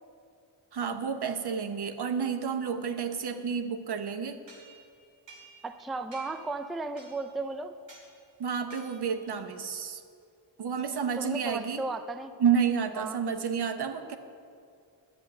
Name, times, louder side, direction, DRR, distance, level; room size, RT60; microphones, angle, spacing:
voice 1, 0.7-4.4 8.4-10.0 10.6-11.8 12.4-14.2, right 7 dB, 65° right, 8 dB, 1.0 m, -30 dB
sound 1, 4.5-5.8 6.1-6.5 7.0-7.4 7.9-8.1 8.7-9.2, right 2 dB, 85° right, 2.6 m, -52 dB
voice 2, 5.6-7.7 11.2-12.3 13.0-13.2, right 3 dB, ahead, 10 dB, 0.4 m, -35 dB
10.5 x 6.5 x 8.6 m, 2.4 s
cardioid pair, 80°, 43 cm